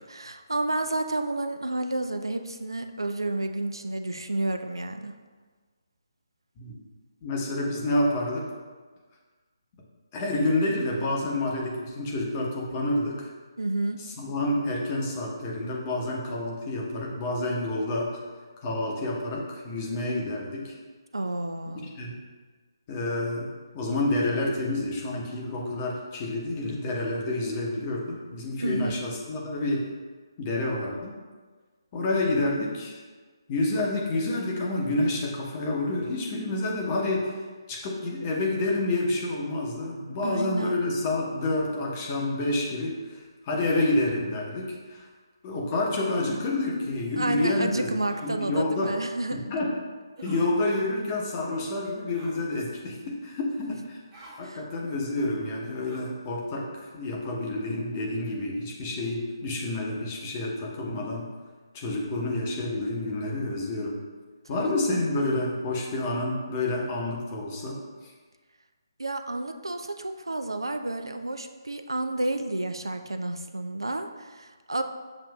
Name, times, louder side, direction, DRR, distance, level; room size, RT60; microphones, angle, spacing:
voice 1, 0.0-5.1 13.6-14.0 21.1-21.9 28.6-29.0 40.2-40.8 47.2-49.4 53.7-53.8 54.4-54.6 64.5-64.6 69.0-74.8, right 2 dB, 80° right, 7 dB, 0.3 m, -30 dB
voice 2, 7.2-8.5 10.1-13.3 14.0-18.2 18.6-20.7 21.6-22.1 22.9-23.5 23.7-29.8 30.4-31.1 31.9-33.0 33.5-37.3 37.7-45.1 45.4-48.9 49.3-49.7 50.2-54.0 54.4-61.3 61.7-64.0 64.5-68.1, left 2 dB, 25° left, -2 dB, 0.8 m, -29 dB
sound 1, 46.0-46.3 48.1-48.3 50.2-50.5 52.1-52.5 54.1-54.4 55.8-56.2, right 1 dB, 20° right, 0.8 m, -48 dB
7.1 x 2.5 x 2.2 m, 1.4 s
figure-of-eight pair, 145°, 2 cm